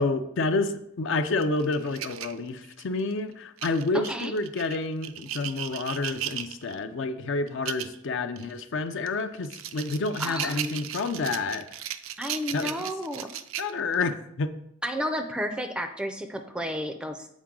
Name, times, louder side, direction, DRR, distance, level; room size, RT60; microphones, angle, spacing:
voice 1, 0.0-11.7 12.5-13.2 13.6-14.5, left 3 dB, 60° left, 9 dB, 0.5 m, -29 dB
sound 1, 1.4-3.0 3.6-6.8 7.5-8.0 8.4-8.5 9.1-14.1, right 11 dB, 75° right, 0.4 m, -36 dB
voice 2, 3.9-4.3 10.2-10.8 12.2-13.3 14.8-17.3, equal, 5° right, 6 dB, 0.4 m, -32 dB
7.2 x 4.6 x 3.7 m, 0.75 s
head